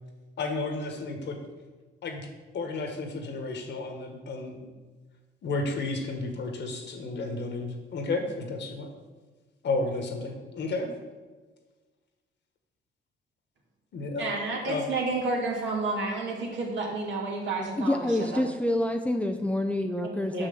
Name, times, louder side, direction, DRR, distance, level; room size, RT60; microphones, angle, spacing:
voice 1, 0.4-1.4 2.0-2.3 2.5-4.7 5.4-8.9 9.6-10.9 13.9-14.3 14.6-14.8, left 3 dB, 65° left, 4 dB, 1.6 m, -32 dB
voice 2, 14.2-18.4 20.0-20.5, right 3 dB, 70° right, -2 dB, 2.6 m, -31 dB
voice 3, 17.8-20.5, left 1 dB, 5° left, 4 dB, 0.5 m, -27 dB
6.3 x 5.9 x 6.9 m, 1.4 s
cardioid pair, 90°, 20 cm